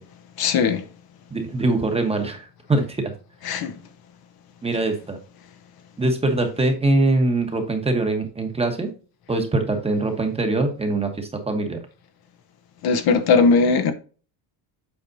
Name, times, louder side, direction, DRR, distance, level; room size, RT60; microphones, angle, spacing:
voice 1, 0.4-0.8 3.4-3.7 12.8-13.9, left 4 dB, 50° left, 0.8 m, -18 dB
voice 2, 1.3-3.1 4.6-5.2 6.0-8.9 9.3-11.8, right 2 dB, 10° right, 1.1 m, -23 dB
8.1 x 5.1 x 2.7 m
cardioid pair, 160°, 49 cm